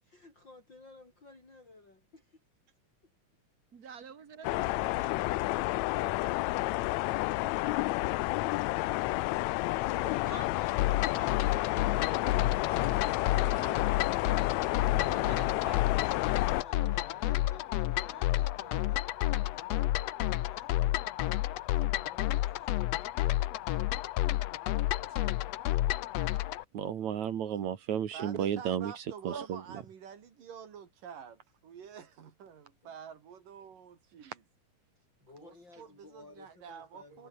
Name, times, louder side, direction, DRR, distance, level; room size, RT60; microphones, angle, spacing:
voice 1, 0.0-2.4 3.0-3.1 16.3-21.0 32.8-32.9 35.0-37.3, left 3 dB, 35° left, 6.6 m, -56 dB
voice 2, 3.7-5.2 9.9-13.8 14.9-17.0 29.3-29.5, right 6 dB, 40° right, 1.5 m, -48 dB
sound 1, 4.4-16.6, left 20 dB, 85° left, 1.6 m, -30 dB
sound 2, 10.8-26.6, left 14 dB, 70° left, 1.7 m, -30 dB
voice 3, 26.7-29.6 34.2-34.3, right 9 dB, 65° right, 2.9 m, -33 dB
voice 4, 28.1-34.4 35.4-37.3, right 7 dB, 85° right, 4.4 m, -48 dB
omnidirectional pair, 3.7 m